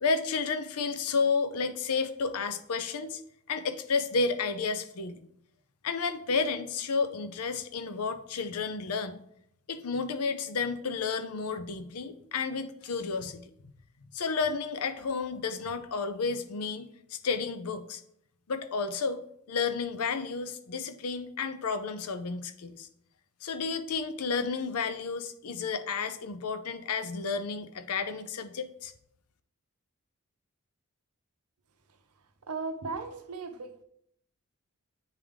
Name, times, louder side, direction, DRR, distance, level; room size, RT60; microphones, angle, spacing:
voice 1, 0.0-3.2 3.5-5.2 5.8-9.2 9.7-13.7 14.1-18.0 18.5-19.2 19.5-22.9 23.4-28.9, left 4 dB, 80° left, 10 dB, 0.6 m, -31 dB
voice 2, 32.5-33.8, right 4 dB, 90° right, 7 dB, 0.7 m, -36 dB
9.6 x 3.4 x 3.6 m, 0.72 s
head